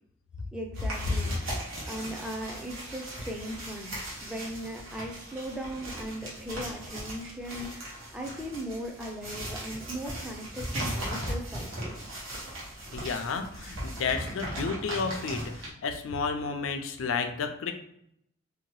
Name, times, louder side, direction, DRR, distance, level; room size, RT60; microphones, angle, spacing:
voice 1, 0.5-12.0, equal, 5° right, 0 dB, 0.4 m, -38 dB
sound 1, 0.7-15.7, right 1 dB, 80° right, 1.0 m, -38 dB
voice 2, 12.9-17.7, left 5 dB, 75° left, 6 dB, 0.4 m, -32 dB
2.7 x 2.2 x 3.0 m, 0.75 s
head